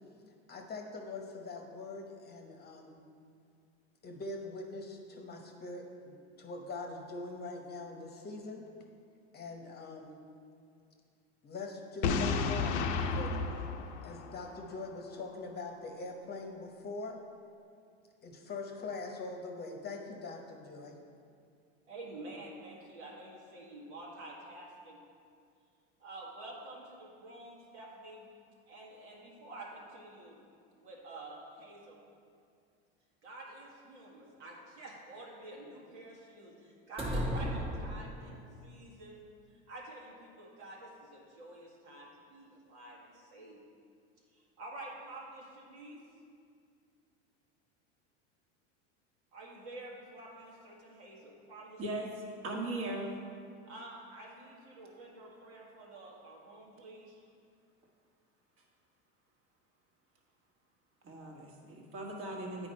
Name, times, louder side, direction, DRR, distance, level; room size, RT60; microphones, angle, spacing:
voice 1, 0.5-3.0 4.0-8.6 9.3-10.2 11.4-13.4 14.0-17.2 18.2-21.0, left 3 dB, 30° left, 3 dB, 0.9 m, -43 dB
Boom, 12.0-14.9, left 4 dB, 75° left, 0.7 m, -32 dB
voice 2, 21.9-25.0 26.0-28.2 28.7-30.4 30.8-32.0 33.2-39.3 39.7-43.6 44.3-46.0 49.3-51.8 53.6-57.2, right 2 dB, 80° right, -3 dB, 1.9 m, -49 dB
sound 1, 37.0-38.6, equal, 15° right, 1.0 m, -35 dB
voice 3, 51.8-53.1 61.0-62.7, right 2 dB, 40° right, 0 dB, 1.5 m, -38 dB
8.9 x 4.7 x 4.3 m, 2.3 s
hypercardioid pair, 100°, 34 cm